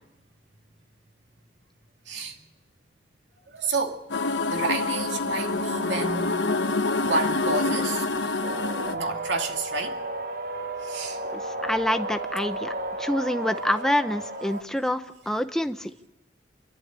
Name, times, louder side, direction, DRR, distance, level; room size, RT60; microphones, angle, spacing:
voice 1, 3.5-4.0 4.5-6.5 7.0-8.0 8.9-10.0 10.8-11.2 12.4-12.7, right 3 dB, 80° right, 2.3 m, -30 dB
sound 1, 4.1-8.9, left 3 dB, 80° left, 1.0 m, -26 dB
sound 2, 8.4-14.6, right 2 dB, 50° right, 1.4 m, -33 dB
voice 2, 11.3-12.7 13.0-15.9, left 1 dB, 5° left, 0.8 m, -27 dB
28.0 x 12.0 x 8.9 m
head